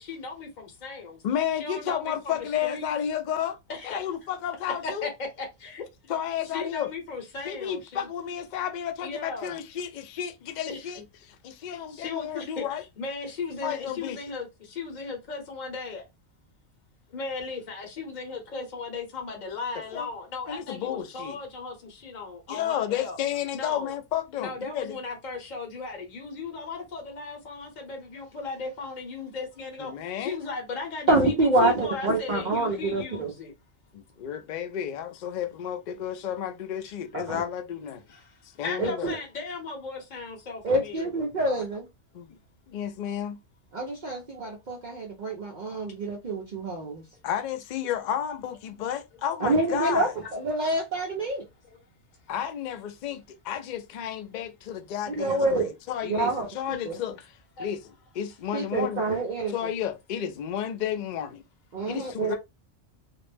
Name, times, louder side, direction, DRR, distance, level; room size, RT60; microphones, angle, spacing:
voice 1, 0.0-1.2 1.5-2.9 3.7-4.0 4.8-5.1 5.4-5.8 6.5-8.1 9.0-9.6 10.7-11.0 11.9-12.6 13.0-14.5 14.8-16.1 17.1-23.2 23.5-23.9 24.4-33.5 38.1-41.3 51.7-51.8 57.6-57.7, left 4 dB, 40° left, 0.8 m, -36 dB
voice 2, 1.2-3.6 3.8-5.1 6.1-6.9 7.4-11.0 11.3-12.8 13.6-14.2 19.9-20.1 20.5-21.4 22.5-25.0 29.8-30.4 33.9-38.0 38.6-39.1 42.1-42.4 42.7-43.4 47.2-50.1 52.3-57.8 58.1-59.0 59.5-61.4 61.9-62.3, left 9 dB, 75° left, 0.4 m, -32 dB
voice 3, 31.1-33.3 37.1-37.4 38.8-39.1 40.6-41.9 43.7-47.0 49.4-51.4 55.1-55.7 56.0-56.9 58.5-59.5 61.7-62.3, right 2 dB, 55° right, 0.5 m, -27 dB
2.5 x 2.0 x 3.2 m
omnidirectional pair, 1.3 m